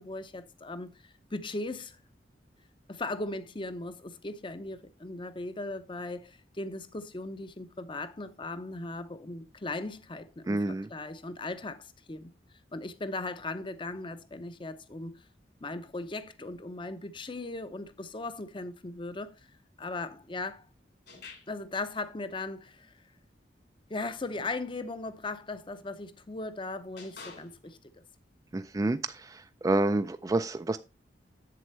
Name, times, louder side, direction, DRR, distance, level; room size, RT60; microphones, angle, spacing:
voice 1, 0.0-2.0 2.9-12.3 12.7-15.2 15.6-19.4 19.8-20.7 21.5-22.9 23.9-27.8, left 2 dB, 30° left, 0.6 m, -38 dB
voice 2, 10.5-10.9 28.5-30.8, right 2 dB, 20° right, 0.3 m, -29 dB
sound 1, 21.1-21.7 24.0-24.6 25.7-25.9 27.0-27.8, left 4 dB, 70° left, 3.0 m, -49 dB
7.7 x 7.5 x 3.2 m
head